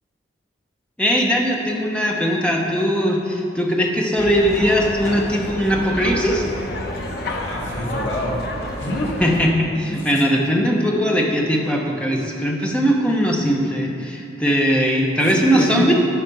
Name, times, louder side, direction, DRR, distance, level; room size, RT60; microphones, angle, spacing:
voice 1, 1.0-6.4 9.2-15.9, equal, 5° left, -1 dB, 0.9 m, -20 dB
sound 1, 4.2-9.5, left 1 dB, 55° left, 0.9 m, -29 dB
voice 2, 7.2-8.4 8.7-9.3 10.0-10.1 15.2-15.9, left 1 dB, 80° left, -3 dB, 1.8 m, -26 dB
10.0 x 5.9 x 5.4 m, 2.6 s
head